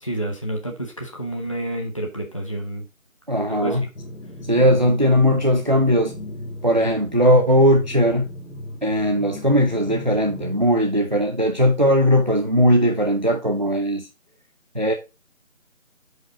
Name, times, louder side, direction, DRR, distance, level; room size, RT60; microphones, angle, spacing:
voice 1, 0.0-2.8 3.5-3.9, right 1 dB, 25° left, 0.9 m, -29 dB
voice 2, 3.3-3.9 4.5-6.1 6.6-8.3 8.8-14.1 14.7-14.9, equal, 35° right, 0.6 m, -18 dB
sound 1, 4.0-10.7, left 1 dB, 65° left, 2.5 m, -36 dB
8.0 x 5.2 x 3.9 m
figure-of-eight pair, 170°, 40 cm